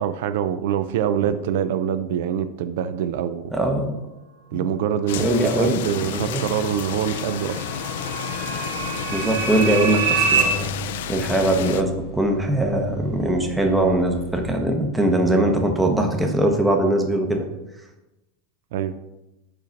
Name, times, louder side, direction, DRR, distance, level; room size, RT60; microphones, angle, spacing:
voice 1, 0.0-3.5 4.5-7.7 18.7-19.0, right 9 dB, 60° right, 11 dB, 0.3 m, -25 dB
voice 2, 3.5-3.9 4.5-4.7 5.2-6.4 9.1-10.7 11.1-17.5, right 1 dB, 5° right, 3 dB, 0.7 m, -21 dB
sound 1, 5.1-11.8, left 9 dB, 70° left, 0.4 m, -31 dB
sound 2, 6.1-10.4, right 6 dB, 85° right, 1.1 m, -26 dB
sound 3, 8.8-14.5, right 11 dB, 40° left, 1.1 m, -42 dB
4.9 x 4.5 x 5.2 m, 0.96 s
supercardioid pair, 170°, 0 cm